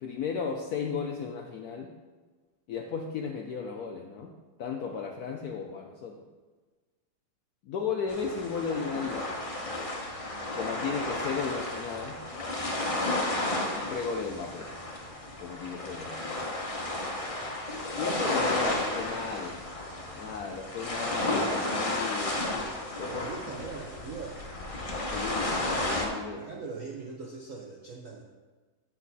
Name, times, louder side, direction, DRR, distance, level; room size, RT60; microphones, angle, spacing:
voice 1, 0.0-2.0 2.7-6.2 7.6-9.3 10.5-12.2 13.7-14.7 15.4-16.4 18.0-19.7 20.1-22.4 23.0-23.3 25.1-26.5, left 5 dB, 75° left, 2 dB, 0.9 m, -35 dB
sound 1, 8.1-26.1, left 2 dB, 35° left, 0.5 m, -32 dB
voice 2, 17.2-17.6 23.0-24.4 26.4-28.2, right 4 dB, 70° right, 0 dB, 0.7 m, -41 dB
8.5 x 7.2 x 4.0 m, 1.3 s
omnidirectional pair, 2.3 m